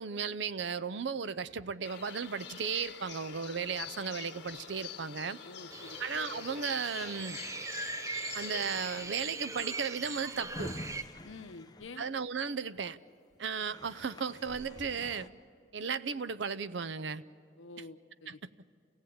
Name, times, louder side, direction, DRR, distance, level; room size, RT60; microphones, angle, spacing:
voice 1, 0.0-5.4 6.0-7.4 8.3-10.7 12.0-13.0 13.4-15.3 15.7-17.2 18.3-18.4, right 6 dB, 70° right, 15 dB, 0.6 m, -35 dB
sound 1, 1.8-9.1, left 8 dB, 60° left, 1.8 m, -46 dB
voice 2, 5.4-6.0 11.2-12.0 17.6-18.4, left 3 dB, 90° left, 10 dB, 0.8 m, -48 dB
sound 2, 5.7-11.0, right 3 dB, 15° right, 0.5 m, -41 dB
Drawer open or close, 10.0-12.8 13.3-13.4 13.6-15.3, left 1 dB, 20° left, 0.7 m, -46 dB
28.5 x 17.0 x 8.6 m, 2.4 s
head